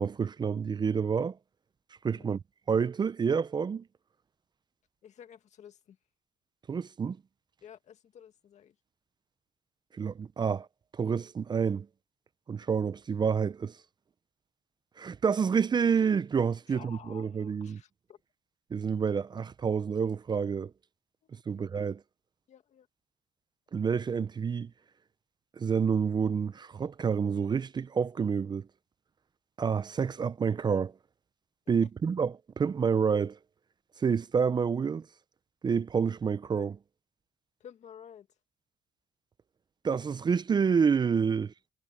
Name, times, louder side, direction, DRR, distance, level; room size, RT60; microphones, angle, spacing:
voice 1, 0.0-1.4 2.0-2.4 2.7-3.8 6.7-7.2 9.9-10.7 10.9-11.9 12.5-13.7 15.0-17.8 18.7-20.7 21.5-22.0 23.7-24.7 25.6-28.7 29.6-30.9 31.7-33.4 34.0-35.1 35.6-36.8 39.8-41.5, right 6 dB, 35° right, 0.6 m, -28 dB
voice 2, 2.0-2.4 5.0-6.0 7.6-8.7 16.7-18.2 21.5-21.7 22.5-22.9 31.8-31.9 37.6-38.3, left 9 dB, 60° left, 2.0 m, -52 dB
cardioid pair, 85°, 13 cm